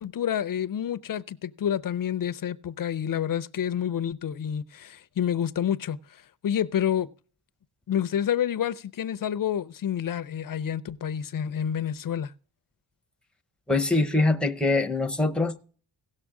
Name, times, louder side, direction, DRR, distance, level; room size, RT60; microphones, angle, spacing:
voice 1, 0.0-7.1 7.9-12.3, left 9 dB, 45° left, 0.5 m, -29 dB
voice 2, 13.7-15.6, left 2 dB, ahead, 0.6 m, -23 dB
17.0 x 6.6 x 3.7 m
wide cardioid pair, 155°, 48 cm